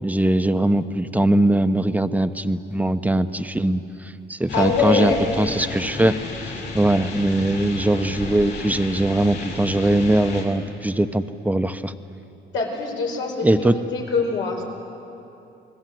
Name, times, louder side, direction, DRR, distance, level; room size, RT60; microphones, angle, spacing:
voice 1, 0.0-6.1 6.4-11.9 13.4-13.7, right 1 dB, 10° right, 10 dB, 1.0 m, -21 dB
voice 2, 4.5-5.2 12.5-14.6, left 4 dB, 80° left, 0 dB, 5.2 m, -23 dB
sound 1, 4.5-10.4, left 3 dB, 65° left, 6.6 m, -33 dB
28.0 x 20.0 x 7.8 m, 2.8 s
cardioid pair, 90°, 20 cm